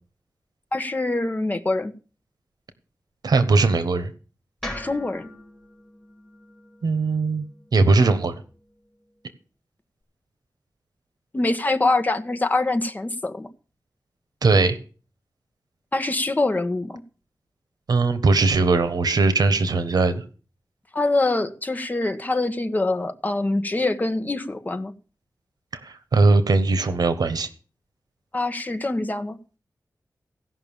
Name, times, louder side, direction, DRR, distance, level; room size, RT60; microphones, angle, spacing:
voice 1, 0.7-1.9 4.7-5.3 11.3-13.5 15.9-17.0 20.9-24.9 28.3-29.4, left 2 dB, 25° left, 1.3 m, -24 dB
voice 2, 3.2-4.1 6.8-7.4 7.7-8.4 14.4-14.8 17.9-20.2 25.8-27.5, right 3 dB, 80° right, 1.3 m, -19 dB
sound 1, 4.6-8.8, left 1 dB, 5° left, 4.8 m, -41 dB
16.0 x 5.9 x 7.2 m
wide cardioid pair, 110°, 7 cm